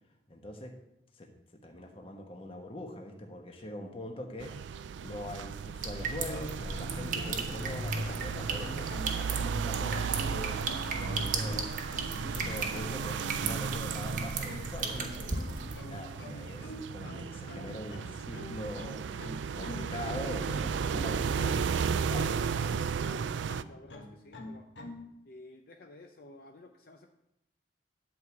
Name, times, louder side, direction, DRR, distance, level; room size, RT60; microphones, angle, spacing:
voice 1, 0.3-0.8 1.1-1.3 1.6-11.7 12.1-15.4 15.9-19.0 19.5-22.4, left 1 dB, 30° left, 3 dB, 1.3 m, -43 dB
sound 1, 4.4-23.6, right 6 dB, 85° right, 0.4 m, -35 dB
sound 2, 5.8-15.8, right 3 dB, 45° right, 1.2 m, -36 dB
sound 3, 6.3-25.1, left 1 dB, 75° left, 1.4 m, -45 dB
voice 2, 23.7-24.7 25.2-27.1, left 2 dB, 55° left, 3 dB, 0.6 m, -52 dB
10.5 x 4.7 x 7.0 m, 0.86 s
head